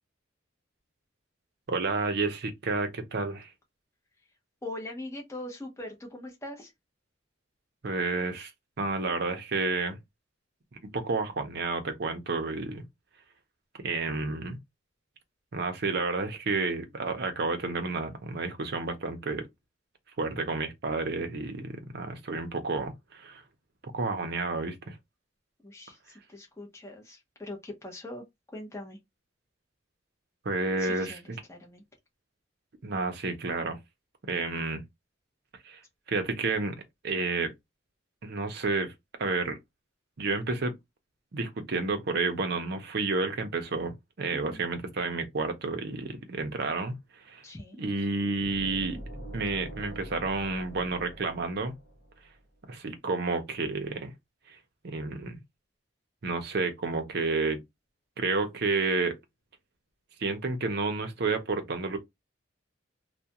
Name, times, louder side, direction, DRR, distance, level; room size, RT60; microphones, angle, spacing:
voice 1, 1.7-3.5 7.8-8.5 8.8-10.0 10.9-12.9 13.8-14.6 15.5-19.5 20.2-23.4 23.9-25.0 30.4-31.4 32.8-33.8 34.3-34.8 35.6-35.8 36.1-36.8 37.0-37.5 38.2-38.9 39.2-39.6 40.2-40.7 41.3-47.4 47.8-49.0 49.3-51.8 52.7-54.1 54.5-54.6 54.8-55.4 56.2-57.6 58.2-59.1 60.2-62.0, right 3 dB, 55° right, 0.6 m, -30 dB
voice 2, 4.6-6.7 25.6-28.2 28.5-29.0 30.8-31.8 44.3-44.6 47.4-47.8, left 1 dB, 15° left, 0.7 m, -42 dB
sound 1, 48.4-52.2, right 1 dB, 50° left, 0.8 m, -43 dB
2.3 x 2.1 x 2.7 m
head